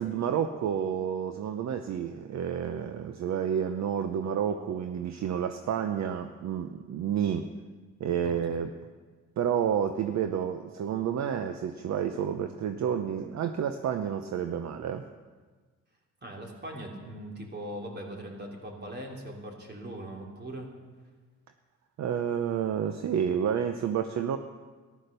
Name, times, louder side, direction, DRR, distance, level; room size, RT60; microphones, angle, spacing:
voice 1, 0.0-7.5 8.0-8.7 9.4-15.1 22.0-24.4, right 8 dB, 65° right, 8 dB, 0.8 m, -30 dB
voice 2, 8.2-8.6 16.2-20.7, right 1 dB, 35° right, 1 dB, 3.2 m, -40 dB
14.0 x 11.5 x 6.7 m, 1.4 s
cardioid pair, 90°, 30 cm